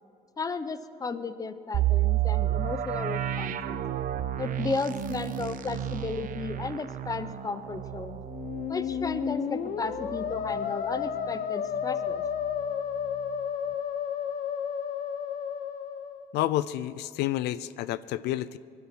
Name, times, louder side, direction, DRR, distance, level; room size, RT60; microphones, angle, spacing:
voice 1, 0.4-3.8 4.3-8.2 8.7-12.2, left 4 dB, 20° left, 12 dB, 0.8 m, -34 dB
sound 1, 1.7-11.5 11.8-11.9 12.4-12.7, right 12 dB, 50° right, 0.9 m, -31 dB
Musical instrument, 8.2-16.3, left 8 dB, 55° left, 1.0 m, -32 dB
voice 2, 16.3-18.6, left 14 dB, 80° left, 16 dB, 0.5 m, -29 dB
20.0 x 12.0 x 6.0 m, 2.6 s
cardioid pair, 110°, 17 cm